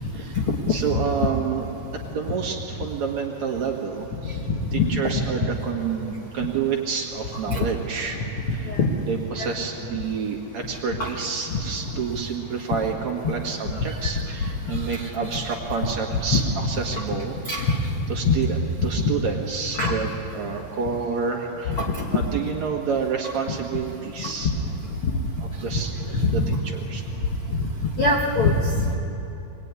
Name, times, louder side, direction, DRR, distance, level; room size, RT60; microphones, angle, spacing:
voice 1, 0.7-1.7 2.1-4.4 4.7-8.8 9.0-17.4 18.1-21.8 22.1-24.5 25.4-25.9 26.3-27.1, right 6 dB, 50° right, 1 dB, 2.8 m, -29 dB
voice 2, 26.2-26.6 28.0-28.9, left 3 dB, 55° left, -1 dB, 1.5 m, -22 dB
25.5 x 20.5 x 9.8 m, 3.0 s
omnidirectional pair, 4.7 m